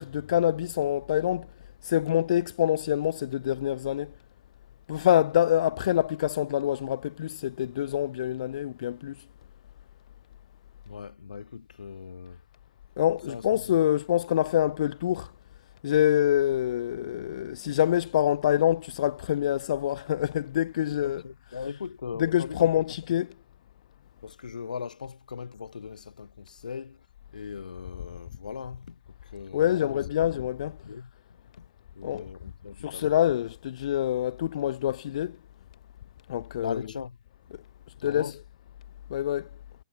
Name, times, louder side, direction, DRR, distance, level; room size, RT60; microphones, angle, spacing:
voice 1, 0.0-1.5 1.8-4.1 4.9-9.2 13.0-15.3 15.8-21.7 22.2-23.3 29.5-30.8 32.0-32.3 32.8-35.4 36.3-36.8 38.0-38.3 39.1-39.5, left 12 dB, 50° left, 0.4 m, -26 dB
voice 2, 10.9-12.4 13.3-13.8 21.0-22.7 24.2-27.1 27.3-30.4 30.8-31.1 31.6-31.7 31.9-33.2 36.6-37.2 38.0-38.4, left 6 dB, 70° left, 1.3 m, -39 dB
figure-of-eight pair, 115°, 4 cm